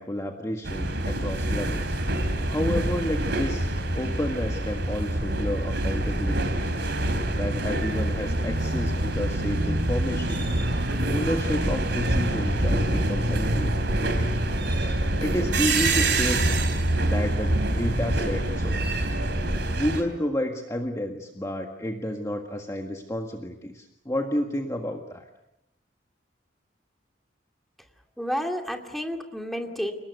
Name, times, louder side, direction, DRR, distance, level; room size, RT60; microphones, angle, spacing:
voice 1, 0.0-1.9 2.5-3.7 3.9-6.6 7.3-10.5 11.1-13.8 15.2-16.5 17.1-18.8 19.7-25.3, equal, 15° left, 3 dB, 1.7 m, -30 dB
sound 1, 0.6-20.0, right 1 dB, 65° right, 3.8 m, -25 dB
voice 2, 28.2-29.9, equal, ahead, 3 dB, 2.6 m, -30 dB
30.0 x 19.0 x 8.1 m, 0.86 s
head